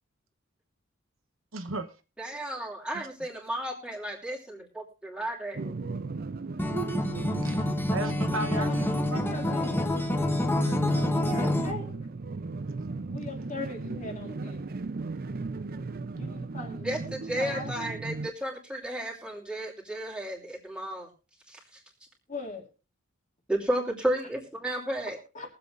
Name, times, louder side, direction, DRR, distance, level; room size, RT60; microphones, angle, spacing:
voice 1, 1.5-1.9 2.9-3.1 7.4-9.2 10.5-11.5, right 2 dB, 70° right, 1.0 m, -37 dB
voice 2, 2.2-5.7 16.8-21.1 21.5-21.6 23.5-25.2, right 1 dB, 5° right, 2.8 m, -33 dB
sound 1, 5.5-18.3, right 3 dB, 45° right, 0.5 m, -36 dB
Acoustic guitar, 6.6-11.7, left 1 dB, 10° left, 0.9 m, -27 dB
voice 3, 8.4-9.9 11.0-11.9 13.1-14.7 16.1-17.7 22.3-22.7 25.3-25.5, left 2 dB, 40° left, 2.4 m, -40 dB
23.0 x 7.8 x 2.5 m
head